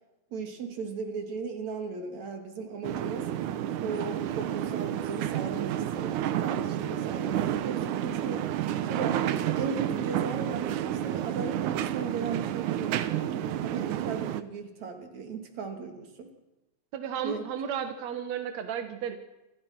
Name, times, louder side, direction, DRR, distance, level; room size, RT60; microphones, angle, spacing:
voice 1, 0.3-3.3 3.8-8.5 8.8-16.3 17.2-17.4, right 5 dB, 45° right, 5 dB, 3.6 m, -37 dB
sound 1, 2.8-14.4, right 11 dB, 80° right, 1.7 m, -30 dB
voice 2, 16.9-19.2, right 8 dB, 60° right, 8 dB, 1.9 m, -33 dB
28.5 x 22.0 x 6.1 m, 1.0 s
omnidirectional pair, 5.0 m